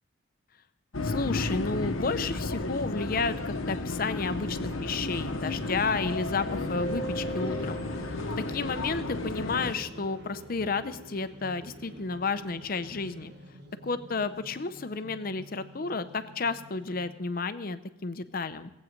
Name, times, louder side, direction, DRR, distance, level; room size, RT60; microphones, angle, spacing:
sound 1, 0.9-9.7, left 2 dB, 85° left, 1.0 m, -32 dB
voice 1, 1.0-8.2 8.5-13.3 13.8-18.7, left 4 dB, 45° left, 12 dB, 0.6 m, -32 dB
sound 2, 4.1-17.4, right 1 dB, 55° right, 1.4 m, -47 dB
18.5 x 8.4 x 5.2 m, 0.93 s
head